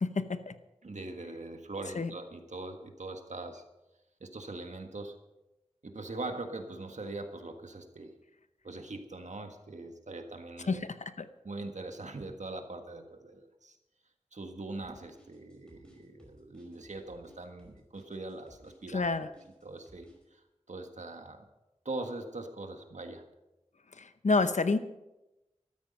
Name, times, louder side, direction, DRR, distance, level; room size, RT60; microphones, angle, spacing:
voice 1, 0.0-0.6 1.9-2.1 10.7-11.3 18.9-19.3 23.9-24.8, left 3 dB, 85° left, 11 dB, 0.8 m, -29 dB
voice 2, 0.8-3.6 4.2-5.2 5.8-8.2 8.6-10.8 11.4-13.8 14.3-19.1 19.6-21.5 21.9-23.3, right 2 dB, 85° right, 5 dB, 1.6 m, -42 dB
sound 1, 14.8-20.2, equal, 5° left, 5.0 m, -59 dB
13.5 x 13.0 x 5.3 m, 0.96 s
wide cardioid pair, 60°, 12 cm